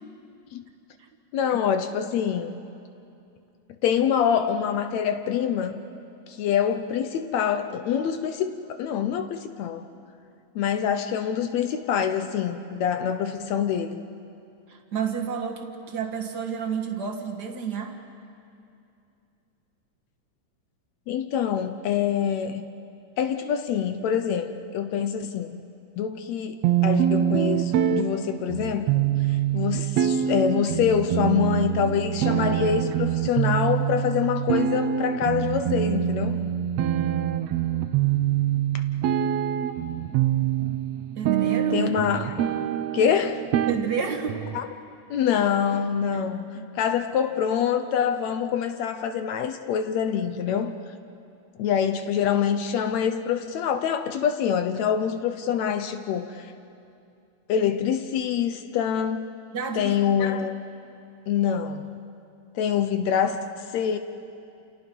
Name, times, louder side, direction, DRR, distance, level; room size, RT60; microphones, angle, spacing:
voice 1, 1.3-2.6 3.8-5.8 6.3-9.9 10.6-14.0 21.1-22.7 23.2-25.6 26.0-36.4 41.7-42.4 42.9-43.4 44.5-44.7 45.1-46.5 46.7-50.8 51.6-56.5 57.5-59.3 59.7-60.5 61.3-61.9 62.6-64.0, left 8 dB, 75° left, 8 dB, 1.7 m, -25 dB
voice 2, 14.7-18.0 41.1-41.9 43.7-44.4 46.1-46.2 59.5-60.0, right 6 dB, 45° right, 2 dB, 1.4 m, -30 dB
sound 1, 26.6-44.6, right 10 dB, 75° right, 1.6 m, -25 dB
28.5 x 28.5 x 5.4 m, 2.6 s
omnidirectional pair, 3.8 m